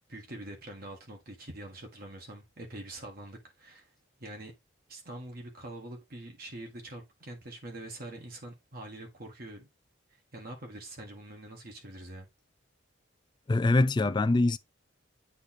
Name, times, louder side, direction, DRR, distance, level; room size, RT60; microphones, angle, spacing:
voice 1, 0.1-3.9 4.2-4.5 4.9-9.7 10.1-12.3, right 1 dB, 50° right, 1.6 m, -44 dB
voice 2, 13.5-14.6, left 2 dB, 20° left, 0.3 m, -24 dB
8.2 x 3.1 x 4.1 m
head